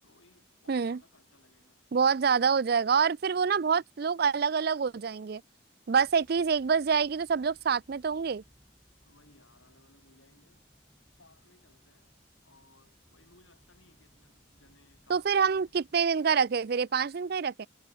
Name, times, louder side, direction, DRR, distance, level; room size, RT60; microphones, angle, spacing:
voice 1, 0.0-1.8 3.6-3.8 9.0-10.7 11.1-12.2 12.4-15.7, left 2 dB, 85° left, 6.9 m, -63 dB
voice 2, 0.7-1.0 1.9-5.4 5.9-8.4 15.1-17.7, right 6 dB, 50° right, 0.4 m, -26 dB
sound 1, 5.9-16.1, equal, 5° right, 3.9 m, -65 dB
head